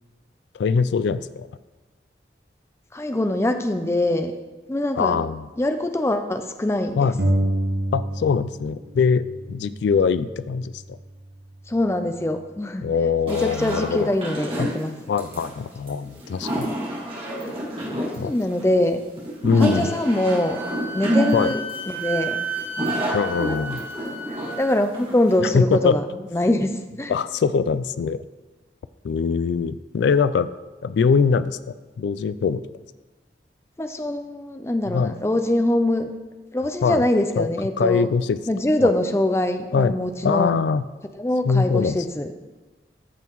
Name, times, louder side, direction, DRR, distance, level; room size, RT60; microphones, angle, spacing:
voice 1, 0.5-1.5 5.0-5.5 7.0-7.2 7.9-9.2 9.5-11.0 12.8-14.1 14.6-14.7 15.1-16.7 18.2-18.3 19.4-19.9 21.3-21.5 23.1-23.9 25.4-26.0 27.1-28.2 29.0-30.5 30.8-32.6 34.9-35.2 36.8-37.0 37.4-37.5 37.8-38.4 38.8-38.9 39.7-40.9 41.4-42.0, left 5 dB, 80° left, 15 dB, 0.3 m, -22 dB
voice 2, 2.9-4.3 4.7-5.2 5.6-7.1 11.7-12.9 13.3-14.9 17.8-19.0 19.6-20.6 20.9-21.6 21.9-22.4 24.3-26.0 26.3-27.1 33.8-36.1 36.5-38.1 38.5-40.5 41.2-42.5, left 1 dB, 15° left, 7 dB, 0.4 m, -23 dB
sound 1, 7.2-8.7 8.9-10.7, right 1 dB, 65° right, 1.1 m, -27 dB
sound 2, 13.3-25.4, equal, 30° right, 2.1 m, -29 dB
Wind instrument woodwind instrument, 19.6-24.8, right 3 dB, 10° right, 0.7 m, -32 dB
14.0 x 5.5 x 3.0 m, 1.2 s
head